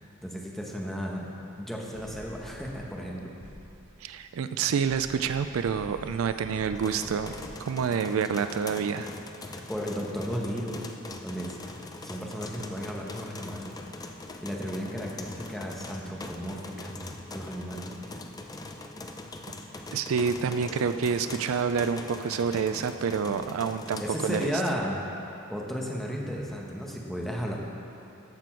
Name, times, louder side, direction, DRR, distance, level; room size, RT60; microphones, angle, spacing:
voice 1, 0.2-1.3 1.6-3.3 9.5-10.8 11.2-11.6 12.0-13.7 14.4-17.9 24.0-25.0 25.5-27.5, equal, ahead, -2 dB, 1.1 m, -34 dB
sound 1, 1.9-3.1 3.4-4.1 4.6-7.5, equal, 85° right, 1.4 m, -47 dB
voice 2, 4.0-7.3 7.6-9.2 19.9-24.5, right 6 dB, 65° right, 10 dB, 0.3 m, -28 dB
sound 2, 6.7-24.7, left 2 dB, 20° left, 0.5 m, -42 dB
13.5 x 6.8 x 4.5 m, 3.0 s
head